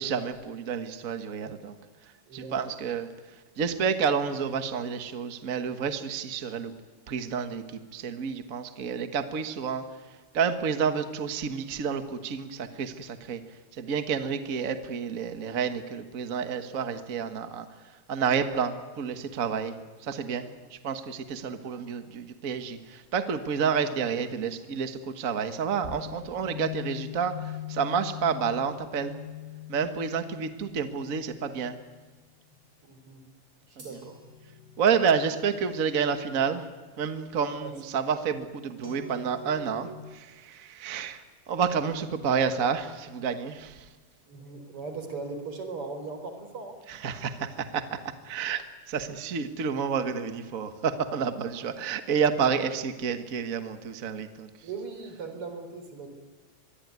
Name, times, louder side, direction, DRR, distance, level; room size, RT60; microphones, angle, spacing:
voice 1, 0.0-1.8 2.3-3.1 3.6-6.7 7.1-9.8 10.3-13.4 13.7-17.7 18.1-19.7 20.0-29.1 29.7-31.8 33.8-33.9 34.8-36.6 37.0-41.2 41.5-43.9 46.9-54.5, right 6 dB, 60° right, 9 dB, 0.8 m, -29 dB
voice 2, 2.3-2.6 32.8-33.2 33.7-34.2 37.3-37.7 44.3-46.8 54.6-56.1, right 4 dB, 40° right, 7 dB, 4.8 m, -39 dB
sound 1, 25.8-32.1 33.8-36.6 38.8-40.0, left 7 dB, 25° right, 5.3 m, -42 dB
25.5 x 22.5 x 9.6 m, 1.4 s
omnidirectional pair, 3.8 m